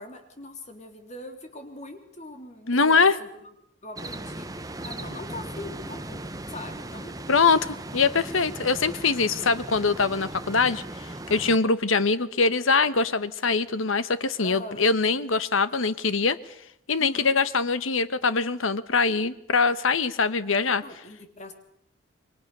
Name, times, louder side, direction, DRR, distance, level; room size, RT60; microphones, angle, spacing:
voice 1, 0.0-3.5 3.8-6.2 6.5-7.6 14.4-14.8 17.0-17.4 20.8-21.5, left 1 dB, 35° left, 6 dB, 3.3 m, -42 dB
voice 2, 2.7-3.1 7.3-7.6 7.9-16.4 16.9-20.8, left 4 dB, 85° left, 14 dB, 1.2 m, -23 dB
sound 1, 4.0-11.6, right 1 dB, 20° right, 1.3 m, -38 dB
29.5 x 23.0 x 6.8 m, 0.75 s
head